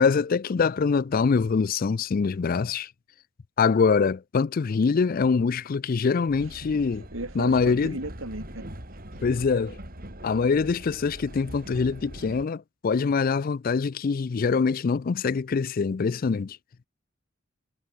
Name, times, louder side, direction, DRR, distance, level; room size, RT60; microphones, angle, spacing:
voice 1, 0.0-2.9 3.6-7.0 7.4-8.0 9.2-9.8 10.2-16.6, left 5 dB, 45° left, 0.4 m, -24 dB
Train, 6.3-12.4, right 1 dB, 45° right, 7.2 m, -42 dB
voice 2, 7.1-8.7 9.1-9.2, right 2 dB, 85° right, 4.1 m, -36 dB
head